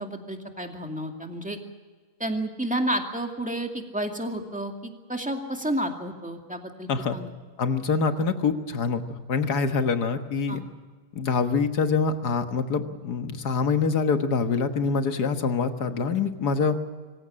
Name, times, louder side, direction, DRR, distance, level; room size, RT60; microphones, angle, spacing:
voice 1, 0.0-1.6 2.2-7.3 10.5-10.6, right 1 dB, 5° right, 3 dB, 2.2 m, -31 dB
voice 2, 7.6-10.6 11.1-16.8, left 5 dB, 80° left, 8 dB, 2.0 m, -25 dB
25.0 x 15.5 x 8.7 m, 1.5 s
omnidirectional pair, 1.7 m